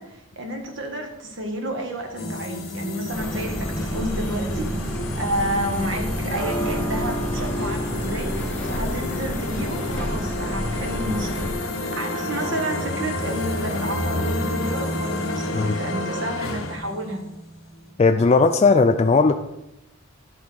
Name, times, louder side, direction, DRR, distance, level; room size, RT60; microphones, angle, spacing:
voice 1, 0.0-8.3 8.6-11.5 11.9-17.2, right 1 dB, 65° right, 4 dB, 1.4 m, -30 dB
sound 1, 2.1-16.8, left 1 dB, 80° left, 0.9 m, -32 dB
sound 2, 2.2-17.9, left 1 dB, 50° left, 1.9 m, -34 dB
sound 3, 3.1-11.5, equal, 5° left, 0.9 m, -29 dB
voice 2, 18.0-19.3, left 4 dB, 30° left, 5 dB, 0.3 m, -17 dB
11.0 x 3.6 x 6.2 m, 0.89 s
head